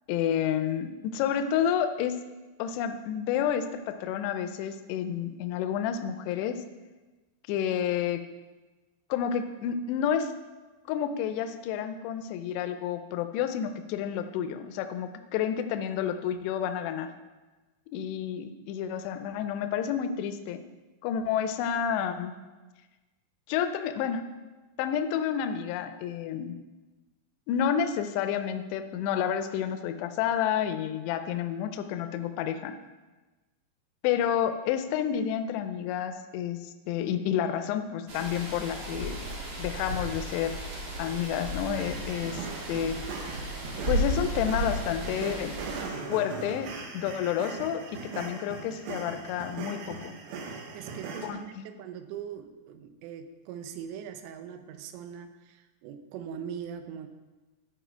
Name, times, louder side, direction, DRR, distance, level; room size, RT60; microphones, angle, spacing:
voice 1, 0.1-2.2 2.6-6.6 7.5-8.2 9.1-10.3 10.9-17.1 17.9-20.6 21.0-22.3 23.5-24.2 24.8-26.6 27.5-32.7 34.0-36.6 36.9-39.2 39.6-40.6 41.0-43.0 43.9-45.5 46.1-50.1 51.2-51.7, left 9 dB, 85° left, 9 dB, 2.7 m, -30 dB
sound 1, 38.1-45.8, equal, 45° right, 2.2 m, -34 dB
sound 2, 41.8-51.3, right 4 dB, 70° right, 2.7 m, -39 dB
voice 2, 50.5-57.1, right 8 dB, 85° right, 8 dB, 2.9 m, -41 dB
13.5 x 4.8 x 4.5 m, 1.2 s
omnidirectional pair, 5.0 m